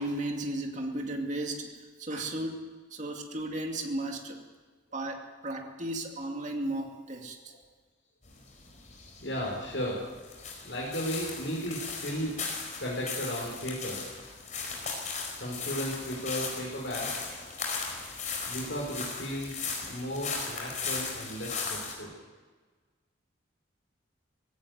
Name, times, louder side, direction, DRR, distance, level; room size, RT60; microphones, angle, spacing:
voice 1, 0.0-4.4 4.9-7.5, right 1 dB, 40° right, 2 dB, 2.5 m, -35 dB
sound 1, 8.3-21.9, left 5 dB, 40° left, 4.8 m, -37 dB
voice 2, 9.2-10.1 10.6-12.3 12.8-14.1 15.3-17.2 18.5-22.1, equal, 65° left, -4 dB, 5.1 m, -35 dB
17.0 x 17.0 x 9.5 m, 1.4 s
head